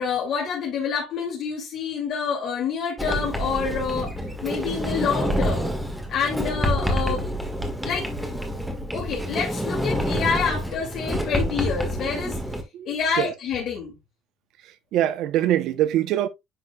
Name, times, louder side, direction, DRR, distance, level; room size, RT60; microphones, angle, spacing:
voice 1, 0.0-4.2 4.4-5.7 6.1-7.2 7.8-8.1 8.9-12.4 12.9-14.0, left 6 dB, 60° left, 2.6 m, -27 dB
Sliding door, 3.0-12.6, equal, ahead, 1.7 m, -27 dB
voice 2, 12.7-13.3 14.6-16.3, right 12 dB, 70° right, 0.8 m, -24 dB
10.0 x 4.6 x 2.3 m
cardioid pair, 110°, 0 cm